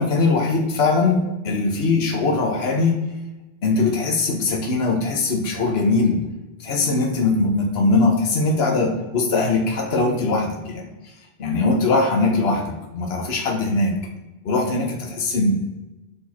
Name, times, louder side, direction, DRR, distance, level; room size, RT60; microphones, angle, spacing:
voice 1, 0.0-3.0 3.6-6.2 6.6-10.9 11.4-13.9 14.4-15.5, left 3 dB, 60° left, 2 dB, 1.4 m, -21 dB
6.1 x 5.4 x 4.2 m, 1.0 s
omnidirectional pair, 1.2 m